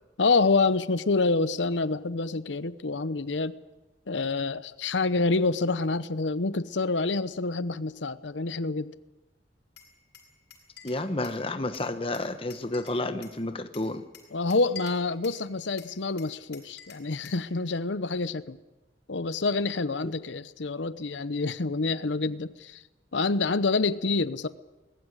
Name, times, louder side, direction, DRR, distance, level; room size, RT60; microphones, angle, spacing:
voice 1, 0.2-3.6 4.1-8.9 14.3-18.6 19.1-22.8 23.1-24.5, left 3 dB, 90° left, 15 dB, 0.9 m, -27 dB
Glass, 9.8-11.4 11.7-13.4 13.7-15.4 15.8-17.4, left 7 dB, 65° left, 7.1 m, -48 dB
voice 2, 10.8-14.0 20.0-20.1, left 2 dB, 30° left, 9 dB, 1.2 m, -31 dB
21.0 x 15.5 x 9.8 m, 1.1 s
head